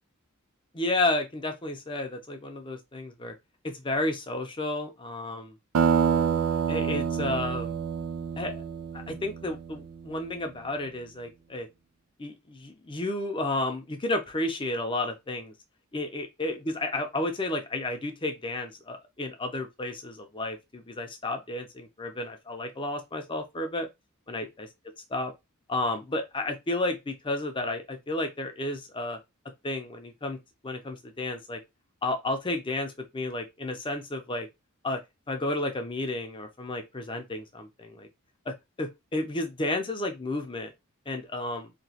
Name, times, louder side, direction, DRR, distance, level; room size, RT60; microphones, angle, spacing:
voice 1, 0.7-3.3 3.6-5.5 6.7-7.8 8.4-8.6 8.9-11.7 12.2-15.5 15.9-23.9 24.3-24.7 25.1-25.3 25.7-29.2 29.6-30.4 30.6-31.6 32.0-34.5 34.8-35.0 35.3-38.1 38.5-40.7 41.1-41.7, left 2 dB, 25° left, 0.6 m, -32 dB
sound 1, 5.7-10.0, right 7 dB, 85° right, 0.4 m, -27 dB
3.0 x 2.9 x 2.8 m
head